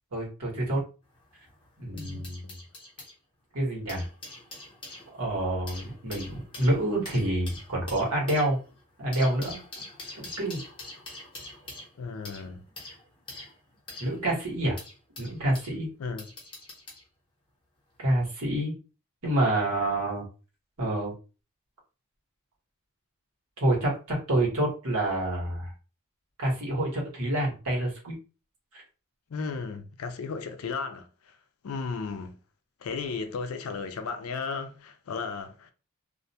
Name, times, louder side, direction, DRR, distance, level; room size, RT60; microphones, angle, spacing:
voice 1, 0.1-0.8 1.8-2.4 3.5-4.1 5.1-8.6 9.0-9.6 10.1-10.6 14.0-14.8 15.2-15.9 18.0-18.7 19.2-20.2 20.8-21.1 23.6-25.7 26.4-28.1 28.7-28.8, right 1 dB, 85° right, 1.3 m, -27 dB
sound 1, 1.0-3.1 3.7-15.7 16.2-17.1 17.9-18.1, left 2 dB, 20° left, 0.8 m, -45 dB
voice 2, 1.9-2.3 12.0-12.6 16.0-16.3 29.3-31.4 31.6-32.4 32.8-35.7, left 4 dB, 80° left, 0.4 m, -35 dB
2.5 x 2.2 x 2.7 m
head